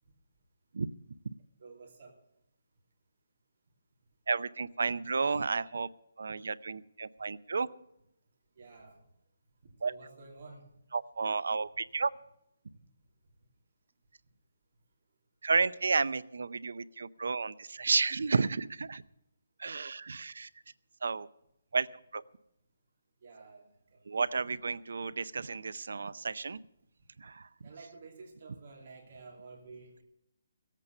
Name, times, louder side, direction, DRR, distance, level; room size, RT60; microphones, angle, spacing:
voice 1, 1.6-2.1 8.6-9.0 9.8-10.6 23.2-24.1 27.6-30.0, right 4 dB, 35° right, 0 dB, 2.9 m, -51 dB
voice 2, 4.3-5.9 6.2-7.7 9.8-9.9 10.9-12.1 15.4-19.0 19.6-20.5 21.0-21.3 21.7-21.9 22.1-22.2 24.1-26.6 27.2-27.5, right 4 dB, 65° right, 17 dB, 0.6 m, -32 dB
16.5 x 8.3 x 6.6 m, 0.79 s
hypercardioid pair, 175°, 0 cm